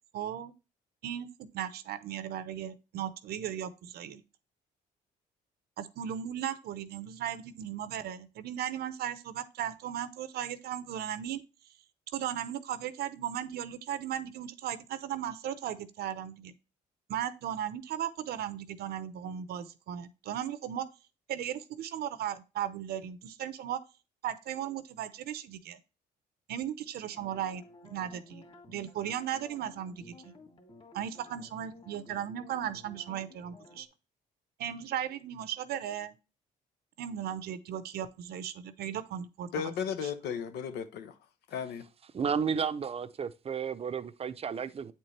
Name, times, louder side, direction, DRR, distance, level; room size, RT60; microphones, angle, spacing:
voice 1, 0.1-0.5 1.0-4.2 5.8-11.4 12.1-16.5 17.1-20.9 21.3-23.8 24.2-25.8 26.5-30.3 30.9-33.9 34.6-36.2 37.0-39.7 40.0-40.1, right 10 dB, 70° right, 0.8 m, -36 dB
sound 1, 27.1-33.9, left 2 dB, 35° left, 2.3 m, -54 dB
voice 2, 39.5-41.1 41.5-41.9, left 7 dB, 80° left, 0.8 m, -35 dB
voice 3, 42.1-44.9, right 6 dB, 35° right, 0.6 m, -32 dB
8.5 x 4.4 x 3.2 m
cardioid pair, 90°, 17 cm